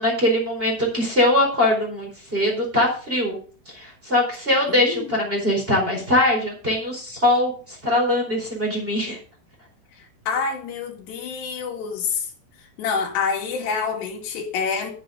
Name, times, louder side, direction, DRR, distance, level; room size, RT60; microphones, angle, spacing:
voice 1, 0.0-3.4 3.7-9.2, left 1 dB, 15° right, -1 dB, 4.2 m, -22 dB
voice 2, 4.7-5.1 10.0-12.3 12.8-14.9, left 5 dB, 90° left, 0 dB, 4.4 m, -27 dB
11.5 x 9.9 x 4.0 m, 0.40 s
omnidirectional pair, 4.7 m